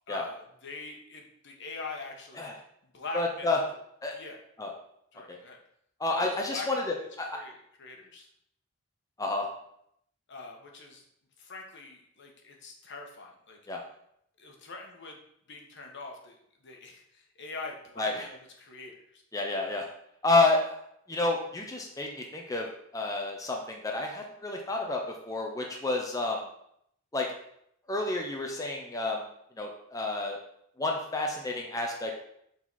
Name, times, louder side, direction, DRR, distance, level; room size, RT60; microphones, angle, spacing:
voice 1, 0.1-2.5 2.8-3.6 4.1-4.4 5.1-5.6 6.2-7.0 7.3-8.3 10.3-11.0 11.4-13.6 14.4-15.2 15.5-19.2, left 3 dB, 60° left, 1 dB, 1.2 m, -43 dB
voice 2, 3.1-3.6 4.0-4.2 4.6-4.7 5.3-5.4 6.0-7.3 9.2-9.5 13.7-13.8 18.0-18.2 19.3-19.9 20.2-20.8 21.1-26.4 27.1-27.3 27.9-29.3 29.6-30.4 30.8-32.1, left 2 dB, 15° left, 0 dB, 0.7 m, -30 dB
7.3 x 4.0 x 4.1 m, 0.73 s
head